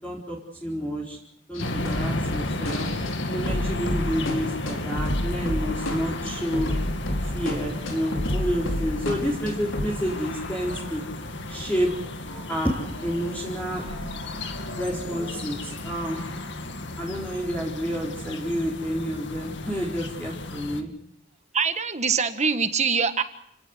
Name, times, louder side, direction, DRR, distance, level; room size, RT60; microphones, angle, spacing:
voice 1, 0.0-1.2 1.5-2.9 3.3-6.7 7.2-11.0 11.5-11.9 12.5-13.9 14.8-16.3 17.0-20.9, equal, 10° left, -3 dB, 4.4 m, -29 dB
sound 1, 1.5-10.0 10.3-10.4 10.7-12.6 12.9-15.4, left 1 dB, 75° left, 5.2 m, -32 dB
sound 2, 1.6-20.8, left 2 dB, 60° left, 2.3 m, -34 dB
voice 2, 21.5-23.2, right 5 dB, 35° right, 9 dB, 1.6 m, -23 dB
29.5 x 18.0 x 8.2 m, 0.74 s
head